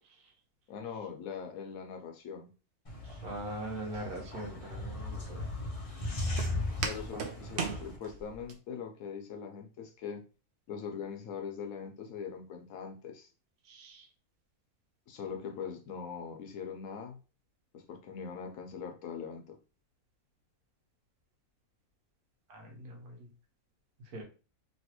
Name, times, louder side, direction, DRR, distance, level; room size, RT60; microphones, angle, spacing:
voice 1, 0.7-2.5 6.8-10.3 10.7-13.3 15.1-17.2 17.7-19.6, left 6 dB, 75° left, 5 dB, 1.1 m, -41 dB
sound 1, 2.8-8.0, left 2 dB, 35° left, 0.6 m, -37 dB
voice 2, 3.1-5.5 7.1-7.2 13.6-14.1 22.5-23.3 24.1-24.2, right 1 dB, 90° right, 1 dB, 1.5 m, -42 dB
Walk footsteps, 3.9-8.5, right 5 dB, 60° right, 0.8 m, -40 dB
3.1 x 2.9 x 2.9 m, 0.34 s
omnidirectional pair, 1.5 m